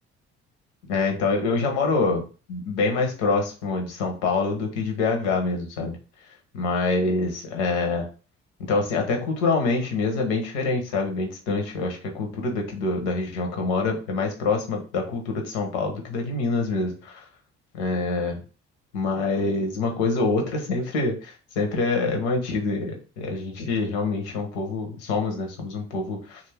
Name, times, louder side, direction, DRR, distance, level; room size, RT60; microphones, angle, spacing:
voice 1, 0.9-2.2 2.5-5.9 6.5-8.1 8.6-17.2 17.7-18.4 18.9-26.4, left 3 dB, 90° left, 2 dB, 0.8 m, -25 dB
2.5 x 2.4 x 3.3 m, 0.36 s
hypercardioid pair, 55°, 33 cm